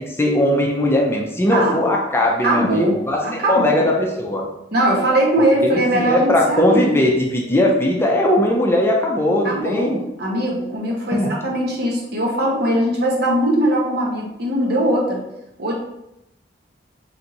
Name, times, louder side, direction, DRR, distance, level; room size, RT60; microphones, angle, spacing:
voice 1, 0.0-4.4 5.4-10.0 11.1-11.3, left 1 dB, 15° left, 0 dB, 0.5 m, -19 dB
voice 2, 1.5-1.9 2.4-3.8 4.7-6.9 9.4-15.2 15.6-15.7, right 1 dB, 65° right, -2 dB, 1.0 m, -20 dB
3.4 x 3.0 x 3.9 m, 0.87 s
head